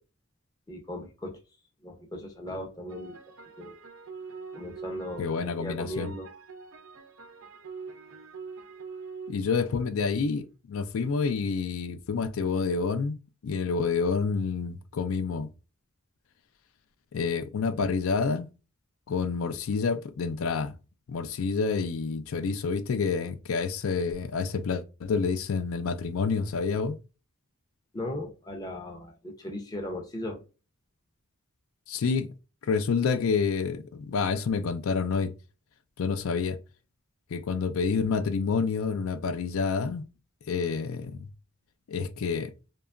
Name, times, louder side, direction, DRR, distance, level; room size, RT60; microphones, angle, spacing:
voice 1, 0.7-1.4 1.8-3.2 3.6-3.7 4.6-6.3 27.9-30.4, left 1 dB, 20° left, 0.5 m, -37 dB
sound 1, 2.9-10.3, right 5 dB, 75° right, 0.5 m, -44 dB
voice 2, 5.2-6.1 9.3-13.2 13.4-15.5 17.1-18.5 19.1-20.7 21.1-27.0 31.9-32.3 32.7-35.3 36.0-36.6 37.3-40.0 40.5-41.1 41.9-42.5, left 5 dB, 75° left, 0.4 m, -28 dB
2.8 x 2.3 x 2.3 m
head